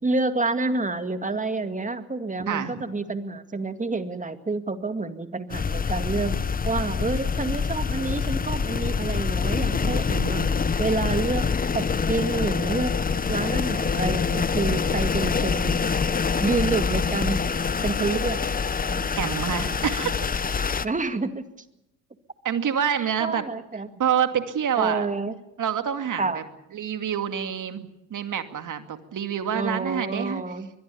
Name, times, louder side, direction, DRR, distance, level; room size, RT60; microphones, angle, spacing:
voice 1, 0.0-6.4 6.6-10.4 10.8-11.5 11.7-15.8 16.4-17.4 17.8-18.4 18.9-19.3 20.8-21.4 23.0-23.9 24.8-25.3 26.2-26.4 29.5-30.7, right 3 dB, 15° right, 9 dB, 2.2 m, -28 dB
voice 2, 2.4-2.8 9.8-10.5 19.2-20.1 22.4-23.5 24.0-25.1 25.6-26.4 26.7-30.4, right 8 dB, 40° right, 8 dB, 2.5 m, -27 dB
sound 1, 5.5-20.8, left 5 dB, 20° left, 0.9 m, -25 dB
24.0 x 21.5 x 7.0 m, 0.88 s
hypercardioid pair, 70°, 47 cm